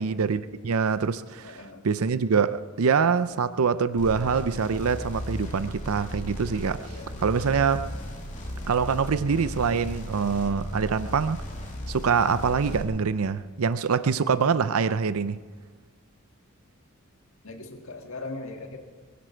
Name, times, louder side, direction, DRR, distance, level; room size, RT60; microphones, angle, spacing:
voice 1, 0.0-6.9 7.2-7.9 8.7-11.4 11.9-15.4, right 5 dB, 75° right, 0.5 m, -25 dB
voice 2, 1.4-1.8 6.7-7.2 17.4-18.8, left 2 dB, 65° left, 1.8 m, -40 dB
sound 1, 4.0-12.8, equal, 35° left, 2.6 m, -36 dB
23.5 x 11.0 x 4.5 m
head